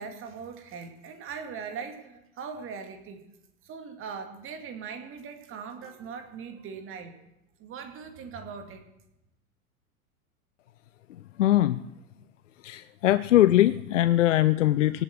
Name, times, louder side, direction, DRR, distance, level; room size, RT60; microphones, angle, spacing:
voice 1, 0.0-3.2 3.6-7.2 7.6-8.8, right 6 dB, 30° right, 6 dB, 2.3 m, -40 dB
voice 2, 11.4-11.8 12.6-15.0, left 13 dB, 60° left, 16 dB, 0.6 m, -21 dB
18.0 x 8.7 x 7.9 m, 0.87 s
figure-of-eight pair, 90°, 42 cm